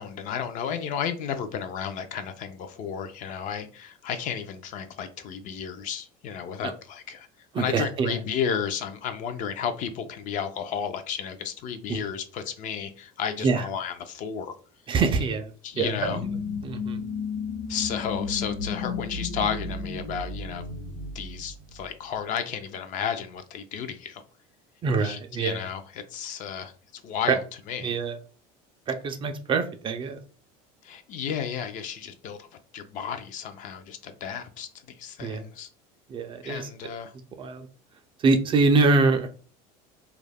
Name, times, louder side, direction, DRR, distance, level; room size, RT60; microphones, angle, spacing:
voice 1, 0.0-7.3 7.5-14.6 15.6-16.2 17.7-20.6 21.1-24.2 25.0-28.0 30.8-32.5 32.7-35.7 36.4-37.1, left 7 dB, 50° left, 0.4 m, -33 dB
voice 2, 7.5-8.2 11.9-12.0 13.4-13.6 14.9-15.5 15.8-16.2 16.6-17.0 24.8-25.6 27.3-27.4 27.8-28.2 28.9-30.2 35.2-35.4 36.1-36.7 37.4-37.7 38.2-39.3, right 3 dB, 30° right, 0.3 m, -24 dB
sound 1, 15.7-22.2, left 4 dB, 80° left, 0.7 m, -33 dB
2.3 x 2.0 x 3.3 m
cardioid pair, 130°, 18 cm